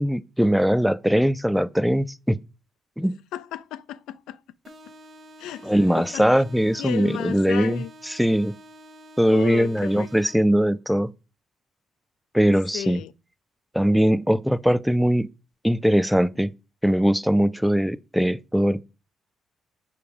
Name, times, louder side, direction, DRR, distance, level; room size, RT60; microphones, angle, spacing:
voice 1, 0.0-2.4 3.0-3.2 5.6-8.6 9.2-11.1 12.3-13.0 13.7-15.3 15.6-16.5 16.8-18.8, equal, ahead, 0.3 m, -21 dB
voice 2, 3.3-4.4 5.4-6.2 6.8-7.9 9.3-10.1 12.7-13.1, left 12 dB, 90° left, 0.3 m, -34 dB
sound 1, 4.6-10.6, equal, 50° right, 1.2 m, -48 dB
4.9 x 4.6 x 5.2 m
cardioid pair, 90°, 0 cm